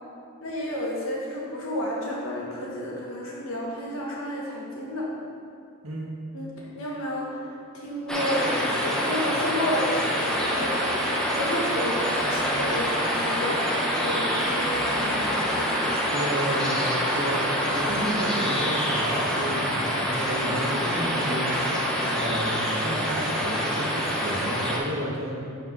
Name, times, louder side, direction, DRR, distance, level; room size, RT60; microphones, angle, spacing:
voice 1, 0.4-5.1 6.3-6.5 6.7-11.0 11.3-13.6 14.0-16.1, equal, 75° left, -4 dB, 1.5 m, -31 dB
sound 1, 8.1-24.8, equal, 5° left, 0.9 m, -26 dB
voice 2, 16.1-17.4 17.7-21.6 22.1-25.4, equal, 80° right, -3 dB, 1.5 m, -31 dB
5.6 x 4.5 x 6.0 m, 2.4 s
head